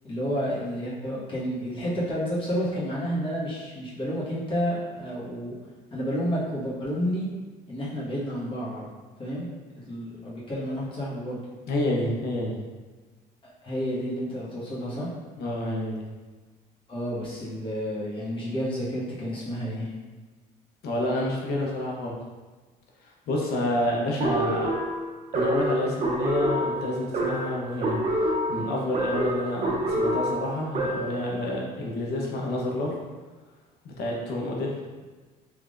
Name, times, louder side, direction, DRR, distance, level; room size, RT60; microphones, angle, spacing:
voice 1, 0.0-5.5 5.9-7.2 7.7-8.9 9.2-9.5 9.7-11.5 13.4-15.1 16.9-19.9, equal, 30° left, -7 dB, 1.3 m, -30 dB
voice 2, 11.7-12.6 15.4-16.1 20.8-22.2 23.0-24.7 25.3-33.0 33.8-34.8, left 1 dB, 75° left, -2 dB, 0.8 m, -29 dB
sound 1, 24.2-31.2, right 1 dB, 40° right, 0.7 m, -27 dB
3.4 x 3.3 x 2.4 m, 1.3 s
cardioid pair, 110°, 17 cm